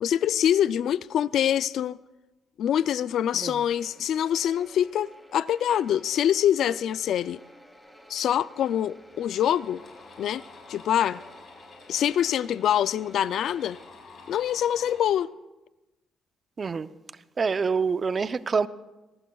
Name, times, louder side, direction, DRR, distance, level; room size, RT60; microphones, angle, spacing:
voice 1, 0.0-2.0 2.6-7.4 8.1-9.8 10.2-10.4 10.7-11.2 11.9-13.8 14.3-15.3, left 10 dB, 70° left, 0.4 m, -25 dB
sound 1, 3.7-13.9, equal, 5° left, 2.7 m, -53 dB
sound 2, 8.9-15.1, left 4 dB, 55° left, 6.9 m, -50 dB
voice 2, 16.6-16.9 17.4-18.7, right 5 dB, 40° right, 0.5 m, -26 dB
23.5 x 19.0 x 2.3 m
cardioid pair, 90°, 0 cm